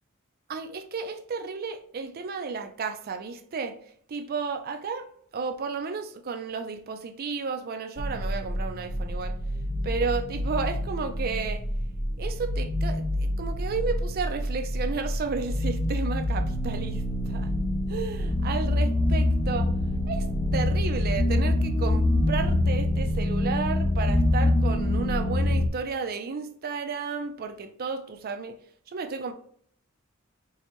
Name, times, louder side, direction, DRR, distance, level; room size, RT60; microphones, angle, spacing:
voice 1, 0.5-3.8 4.1-5.1 5.3-9.4 9.8-11.6 12.2-17.5 17.9-19.7 20.1-20.2 20.5-28.6 28.9-29.3, right 5 dB, 45° right, 7 dB, 0.4 m, -32 dB
sound 1, 8.0-25.7, left 1 dB, 25° left, 0.4 m, -26 dB
4.5 x 2.1 x 2.9 m, 0.62 s
head